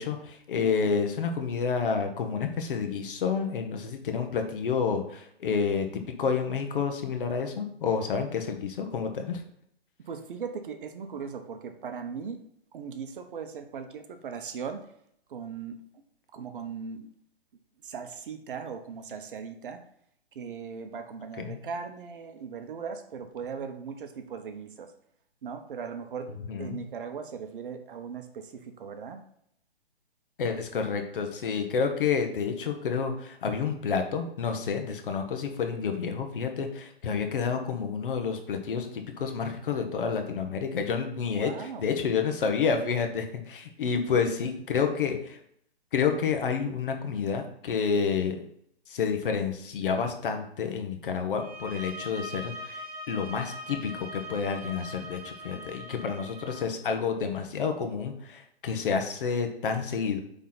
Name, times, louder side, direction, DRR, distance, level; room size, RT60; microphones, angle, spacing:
voice 1, 0.0-9.4 21.4-21.6 26.5-26.8 30.4-45.4 45.9-48.5 48.9-60.2, left 6 dB, 55° left, 5 dB, 1.2 m, -29 dB
voice 2, 0.5-1.0 10.1-12.4 12.7-14.8 15.3-15.8 16.3-17.1 17.8-19.8 20.3-24.9 25.4-26.3 26.6-29.2 41.3-41.8 43.9-44.6, right 6 dB, 55° right, 7 dB, 1.0 m, -38 dB
sound 1, 51.3-56.7, equal, 5° right, 1.7 m, -41 dB
8.8 x 3.6 x 4.0 m, 0.70 s
hypercardioid pair, 145°, 32 cm